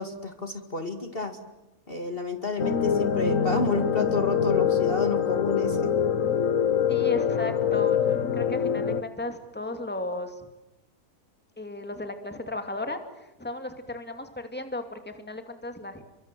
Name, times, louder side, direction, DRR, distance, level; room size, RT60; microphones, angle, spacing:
voice 1, 0.0-1.4 1.9-5.9, left 3 dB, 40° left, 6 dB, 2.4 m, -30 dB
sound 1, 2.6-9.0, left 8 dB, 60° left, 1.6 m, -24 dB
voice 2, 6.9-10.4 11.6-16.0, left 2 dB, 5° left, 7 dB, 2.5 m, -35 dB
29.5 x 24.0 x 7.7 m, 0.96 s
omnidirectional pair, 1.6 m